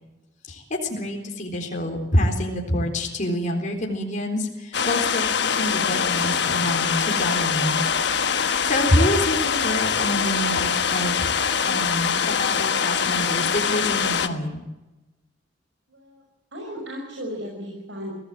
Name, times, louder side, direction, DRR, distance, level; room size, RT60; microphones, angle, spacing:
voice 1, 0.5-7.8 8.4-11.3 11.6-14.6, left 1 dB, 45° left, 1 dB, 3.9 m, -26 dB
sound 1, 4.7-14.3, left 7 dB, 65° left, 1.3 m, -23 dB
voice 2, 15.9-16.2 16.5-18.1, equal, 75° right, -1 dB, 6.1 m, -35 dB
24.0 x 16.5 x 7.5 m, 1.1 s
head